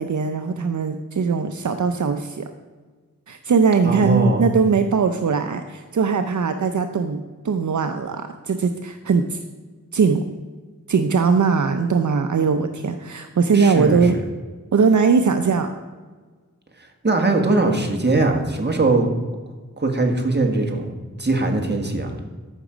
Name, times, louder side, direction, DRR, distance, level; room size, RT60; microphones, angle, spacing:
voice 1, 0.0-2.5 3.3-9.4 9.9-10.2 10.9-14.2 14.7-15.7, right 5 dB, 70° right, 7 dB, 0.6 m, -20 dB
voice 2, 3.8-4.4 13.5-14.2 17.0-19.1 19.8-20.9 21.2-22.1, right 2 dB, 35° right, 3 dB, 1.7 m, -20 dB
13.5 x 6.0 x 5.1 m, 1.4 s
wide cardioid pair, 65°, 31 cm